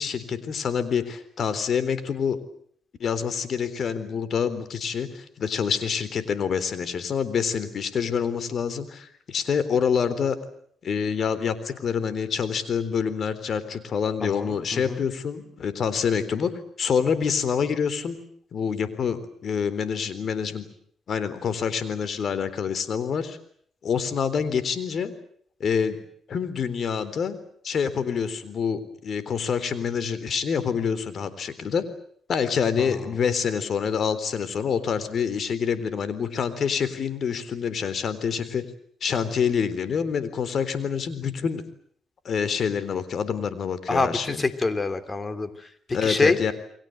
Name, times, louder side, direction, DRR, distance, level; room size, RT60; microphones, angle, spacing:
voice 1, 0.0-2.4 3.0-10.4 10.8-18.2 18.5-20.7 21.1-23.4 23.8-25.1 25.6-26.0 26.3-27.4 27.6-31.9 32.3-38.6 39.0-41.6 42.2-44.4 45.9-46.5, left 6 dB, 55° left, 14 dB, 3.8 m, -26 dB
voice 2, 14.2-15.1 32.8-33.1 43.9-46.4, left 3 dB, 25° left, 10 dB, 3.2 m, -26 dB
29.5 x 22.5 x 8.0 m, 0.63 s
cardioid pair, 90°, 0 cm